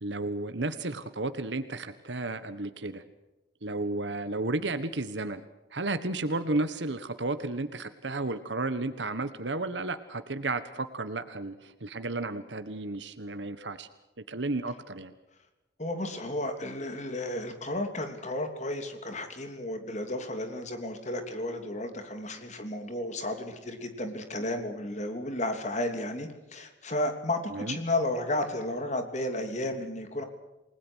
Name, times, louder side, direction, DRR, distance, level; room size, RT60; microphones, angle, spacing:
voice 1, 0.0-3.0 3.6-5.4 5.7-13.9 14.3-15.1 27.5-27.8, right 2 dB, 80° right, 10 dB, 1.4 m, -33 dB
voice 2, 15.8-30.2, left 1 dB, 40° left, 7 dB, 3.2 m, -33 dB
29.0 x 20.0 x 6.4 m, 1.0 s
head